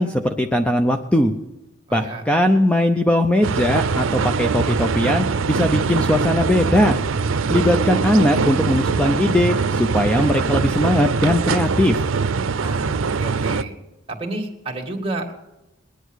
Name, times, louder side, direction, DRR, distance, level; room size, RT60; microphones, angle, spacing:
voice 1, 0.0-1.3 1.9-7.0 7.5-12.0, left 1 dB, 5° left, 5 dB, 0.6 m, -19 dB
voice 2, 1.9-2.2 12.6-13.7 14.1-15.3, right 2 dB, 30° right, 1 dB, 1.9 m, -30 dB
sound 1, 3.4-13.6, right 5 dB, 85° right, 0.6 m, -22 dB
20.0 x 10.0 x 6.4 m, 1.0 s
head